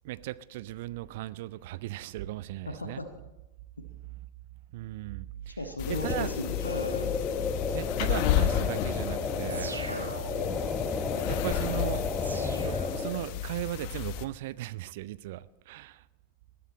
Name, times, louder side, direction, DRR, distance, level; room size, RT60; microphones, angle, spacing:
voice 1, 0.0-3.0 4.7-5.6 6.0-6.3 7.7-9.8 11.3-12.0 12.5-16.0, right 15 dB, 50° right, 0.5 m, -37 dB
voice 2, 2.7-3.1 5.6-7.2 9.8-10.1, left 2 dB, 80° left, 1.2 m, -36 dB
sound 1, 5.8-14.3, left 12 dB, 45° left, 0.9 m, -32 dB
sound 2, 5.9-13.3, left 4 dB, 20° left, 1.2 m, -32 dB
sound 3, 9.5-10.7 12.2-13.5, right 3 dB, 80° right, 1.9 m, -41 dB
20.5 x 12.0 x 4.3 m
figure-of-eight pair, 90°, 0 cm